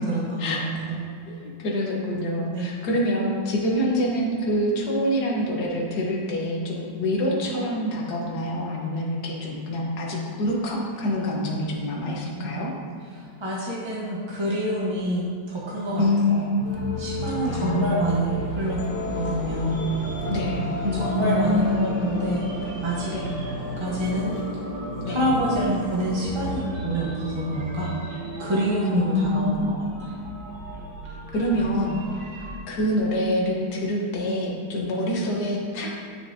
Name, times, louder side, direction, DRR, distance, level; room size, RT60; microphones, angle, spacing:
voice 1, 0.1-1.0 2.5-2.8 12.4-12.6 13.1-16.4 17.0-18.8 19.1-19.8 20.9-22.4 22.8-23.1 23.8-24.3 25.0-27.9 28.4-30.1, right 1 dB, 20° right, -5 dB, 0.8 m, -27 dB
voice 2, 1.3-12.7 16.0-16.8 17.4-18.0 20.3-22.1 23.1-23.4 25.0-25.2 28.8-29.8 31.3-32.0 32.7-35.9, left 1 dB, 55° left, -2 dB, 1.7 m, -26 dB
sound 1, 16.6-29.5, left 2 dB, 75° left, 1.6 m, -35 dB
sound 2, 16.6-32.6, right 1 dB, 90° right, 2.1 m, -36 dB
11.5 x 6.6 x 2.7 m, 2.3 s
omnidirectional pair, 2.1 m